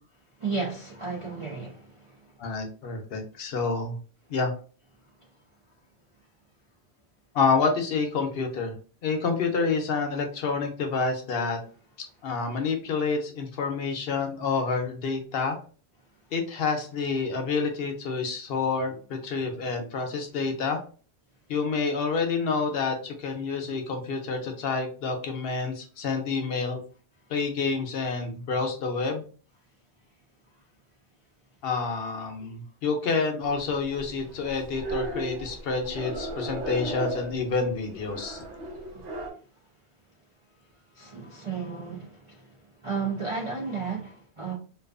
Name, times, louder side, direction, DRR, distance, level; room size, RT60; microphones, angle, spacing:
voice 1, 0.4-2.2 38.9-39.0 40.9-42.5 42.8-44.5, right 4 dB, 50° right, 0.4 m, -33 dB
voice 2, 2.4-4.0 4.3-4.5 7.3-8.7 9.0-11.6 12.2-15.6 16.3-20.8 21.5-26.8 27.3-29.2 31.6-38.4, left 4 dB, 65° left, 0.7 m, -28 dB
sound 1, 33.4-39.3, right 2 dB, 85° right, 1.0 m, -36 dB
2.5 x 2.3 x 2.4 m
omnidirectional pair, 1.1 m